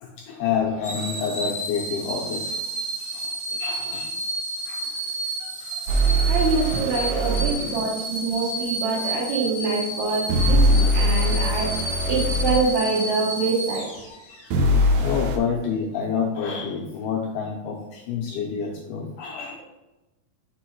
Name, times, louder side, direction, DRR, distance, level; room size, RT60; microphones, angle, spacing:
voice 1, 0.0-2.6 3.0-4.2 4.7-6.3 7.3-7.9 8.9-9.2 9.6-10.8 14.1-14.4 14.7-19.6, left 6 dB, 80° left, 0 dB, 1.9 m, -30 dB
sound 1, 0.8-14.5 15.0-15.1, right 1 dB, 55° left, 0.8 m, -31 dB
sound 2, 5.9-7.6 10.3-12.6 14.5-15.4, equal, 85° right, 1.5 m, -21 dB
voice 2, 6.3-11.7 12.1-13.9, right 4 dB, 65° right, -4 dB, 2.0 m, -25 dB
5.4 x 4.3 x 4.5 m, 1.0 s
omnidirectional pair, 4.3 m